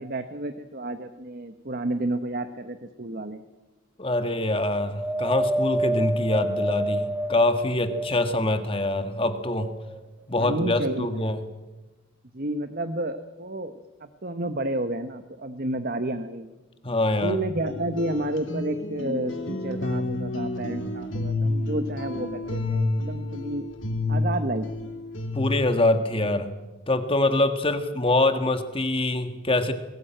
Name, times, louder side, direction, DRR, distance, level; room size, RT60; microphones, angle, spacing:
voice 1, 0.0-3.4 10.4-11.1 12.3-16.6 17.2-23.7 24.1-24.9, right 1 dB, 45° right, 9 dB, 1.1 m, -31 dB
voice 2, 4.0-9.7 10.3-11.4 16.8-17.4 25.3-26.5 26.9-29.7, left 1 dB, 25° left, 8 dB, 1.6 m, -24 dB
Wind, 4.9-8.5 9.1-10.1 10.9-11.0, right 1 dB, 5° right, 0.9 m, -28 dB
sound 1, 17.6-25.8, left 2 dB, 65° left, 2.7 m, -29 dB
22.0 x 17.5 x 9.1 m, 1.1 s
head